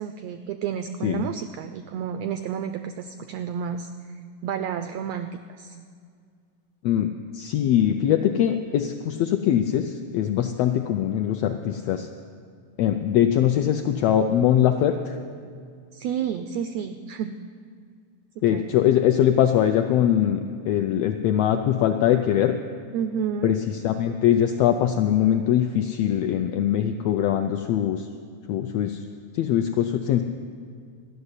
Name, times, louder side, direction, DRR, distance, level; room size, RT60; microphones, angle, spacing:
voice 1, 0.0-3.9 4.4-5.8 15.9-17.3 18.5-18.7 22.9-23.5, right 8 dB, 90° right, 8 dB, 1.4 m, -30 dB
voice 2, 6.8-12.1 12.8-15.2 18.4-20.4 20.6-22.6 23.4-23.6 23.8-28.1 28.5-29.0 29.3-30.2, left 10 dB, 85° left, 6 dB, 1.4 m, -22 dB
13.5 x 6.7 x 9.7 m, 2.1 s
omnidirectional pair, 3.4 m